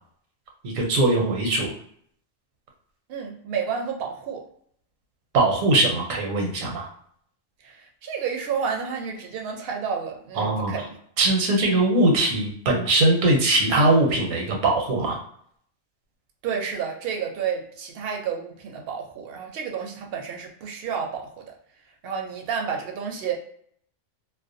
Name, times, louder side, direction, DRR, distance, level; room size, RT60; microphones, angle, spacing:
voice 1, 0.6-1.7 5.3-6.9 10.4-10.7 11.2-15.2, right 2 dB, 85° right, 1 dB, 1.1 m, -21 dB
voice 2, 3.1-4.4 7.6-11.0 16.4-21.4 22.0-23.3, right 6 dB, 65° right, 2 dB, 0.6 m, -30 dB
2.4 x 2.1 x 2.5 m, 0.65 s
omnidirectional pair, 1.3 m